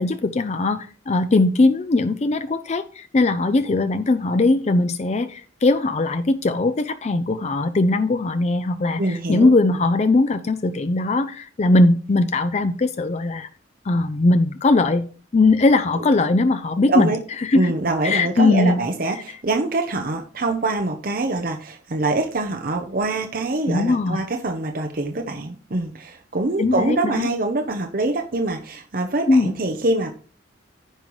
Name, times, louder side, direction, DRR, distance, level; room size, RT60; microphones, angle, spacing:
voice 1, 0.0-13.5 13.8-15.1 15.3-17.1 17.4-17.7 18.0-18.8 19.1-19.2 23.7-24.2 26.6-27.3 29.3-29.5, left 2 dB, 35° left, 11 dB, 0.4 m, -20 dB
voice 2, 9.0-9.5 16.0-16.1 16.9-17.2 17.5-30.1, right 2 dB, 50° right, 5 dB, 0.8 m, -24 dB
14.5 x 5.4 x 3.1 m, 0.41 s
head